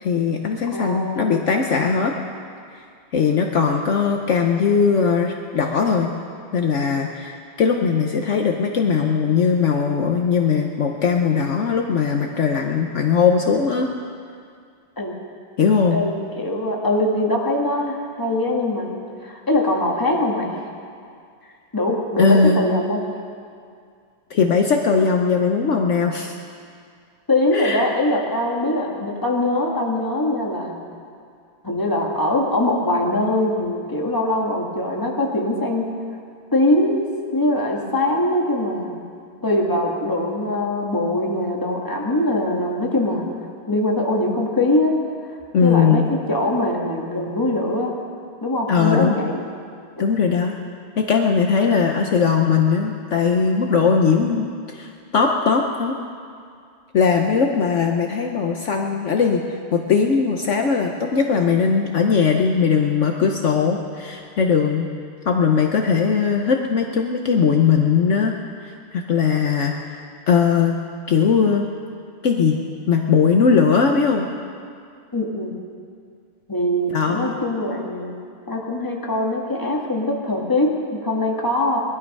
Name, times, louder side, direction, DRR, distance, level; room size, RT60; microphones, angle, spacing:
voice 1, 0.0-2.1 3.1-6.1 6.5-13.9 15.6-16.0 22.2-22.6 24.3-26.3 27.5-27.8 45.5-46.1 48.7-49.1 50.0-50.6 51.1-55.9 56.9-59.4 59.7-64.9 65.2-68.3 68.6-69.8 70.3-70.8 71.1-71.7 72.2-72.6 72.9-74.3 76.9-77.3, left 6 dB, 70° left, 2 dB, 0.7 m, -19 dB
voice 2, 0.7-1.5 15.0-15.1 15.9-20.5 21.7-23.1 27.3-30.7 31.6-35.9 36.5-39.0 39.4-43.3 43.7-45.0 45.6-47.9 48.4-49.4 75.1-75.6 76.5-78.2 78.5-81.8, left 1 dB, 10° left, -1 dB, 1.5 m, -22 dB
19.5 x 12.0 x 5.4 m, 2.2 s
omnidirectional pair, 2.4 m